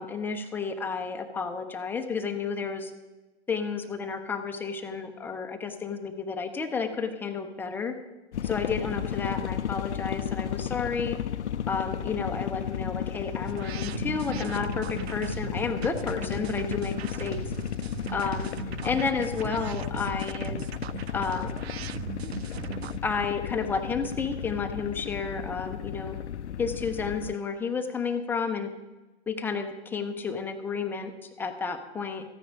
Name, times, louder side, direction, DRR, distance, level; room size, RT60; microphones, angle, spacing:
voice 1, 0.0-2.9 3.5-7.9 8.4-11.2 11.7-17.4 18.1-18.5 18.8-20.6 21.1-21.5 23.0-26.2 26.6-28.7 29.3-32.2, left 5 dB, 5° left, 5 dB, 0.6 m, -31 dB
sound 1, 8.3-27.3, left 10 dB, 75° left, 0.5 m, -34 dB
sound 2, 13.4-23.0, right 10 dB, 65° right, 0.5 m, -39 dB
14.0 x 9.3 x 5.2 m, 1.2 s
figure-of-eight pair, 115°, 34 cm